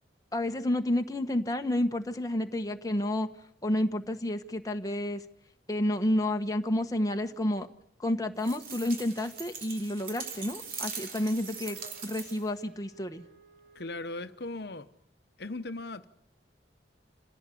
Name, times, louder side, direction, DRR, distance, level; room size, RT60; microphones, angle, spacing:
voice 1, 0.3-3.3 3.6-5.2 5.7-7.7 8.0-13.2, left 1 dB, 20° left, 1.2 m, -30 dB
sound 1, 8.4-12.6, right 6 dB, 50° right, 3.6 m, -41 dB
Wind instrument woodwind instrument, 10.5-14.7, right 4 dB, 90° right, 5.3 m, -58 dB
voice 2, 13.7-14.9 15.4-16.0, left 2 dB, 65° left, 1.0 m, -38 dB
27.0 x 16.0 x 8.5 m
head